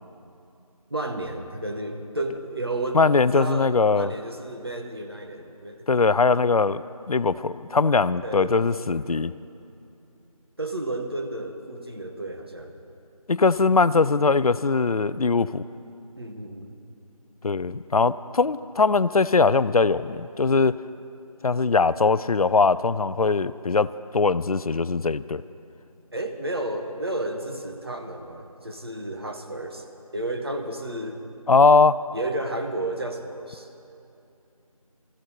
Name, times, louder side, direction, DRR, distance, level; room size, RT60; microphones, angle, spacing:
voice 1, 0.9-5.9 8.2-8.9 10.6-12.7 16.2-16.8 26.1-29.9 30.1-31.2 32.1-33.7, right 2 dB, 40° right, 4 dB, 1.0 m, -32 dB
voice 2, 2.9-4.1 5.9-9.3 13.3-15.6 17.4-20.8 21.4-25.4 31.5-32.0, left 4 dB, 70° left, 16 dB, 0.4 m, -21 dB
20.0 x 14.0 x 3.4 m, 2.7 s
figure-of-eight pair, 175°, 19 cm